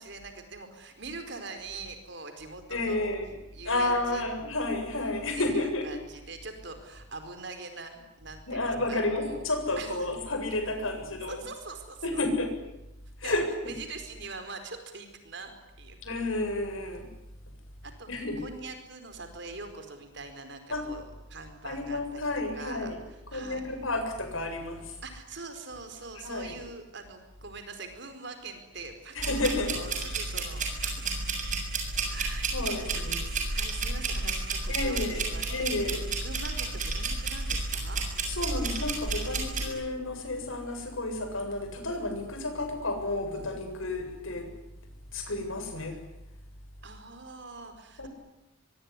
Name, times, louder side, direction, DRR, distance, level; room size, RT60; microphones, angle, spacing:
voice 1, 0.0-3.1 3.5-4.2 5.4-8.6 8.9-9.4 9.8-10.0 11.3-12.2 13.2-15.5 15.8-16.0 17.8-22.3 22.5-23.6 25.0-29.2 29.7-31.1 32.1-35.4 36.2-38.0 46.8-48.1, right 3 dB, 55° right, 7 dB, 4.6 m, -43 dB
voice 2, 2.7-3.3 3.6-5.9 8.5-11.4 12.0-12.5 13.2-13.7 16.0-17.1 18.1-18.4 20.7-20.9 21.6-23.0 23.3-25.0 26.2-26.5 29.2-29.7 32.0-32.1 32.5-33.2 34.7-36.0 38.3-44.5 45.1-46.0 48.0-48.1, left 2 dB, 75° left, 5 dB, 7.6 m, -31 dB
sound 1, 29.2-39.7, right 3 dB, 40° right, 7.2 m, -31 dB
24.5 x 24.0 x 9.8 m, 0.90 s
head